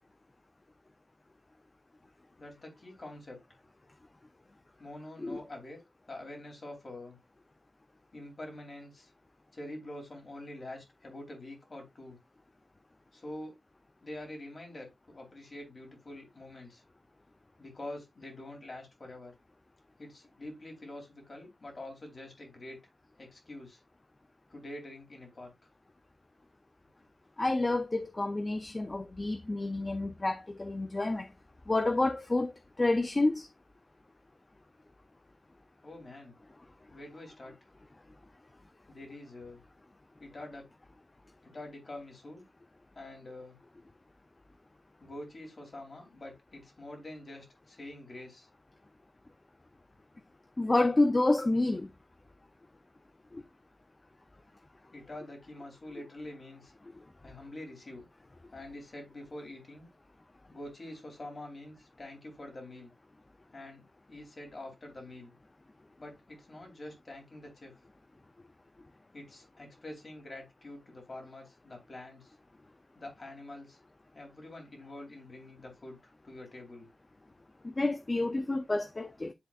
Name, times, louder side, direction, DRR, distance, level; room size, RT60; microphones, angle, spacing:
voice 1, 2.4-3.4 4.8-5.8 6.1-7.2 8.1-9.1 9.5-12.2 13.1-13.5 14.0-16.8 17.6-19.3 20.0-22.8 23.2-23.8 24.5-25.5 35.8-36.3 36.9-37.6 38.9-39.6 40.2-40.7 41.4-42.4 42.9-43.6 45.0-48.5 54.9-56.7 57.2-58.1 58.5-59.9 60.5-62.9 63.5-65.3 66.0-67.7 69.1-72.3 72.9-73.8 74.1-76.9, left 1 dB, 45° left, 3.1 m, -46 dB
voice 2, 27.4-31.3 31.7-33.5 50.6-51.9 53.3-53.4 77.6-79.3, left 2 dB, 30° left, 0.6 m, -29 dB
10.5 x 3.9 x 2.5 m
cardioid pair, 65°, 0 cm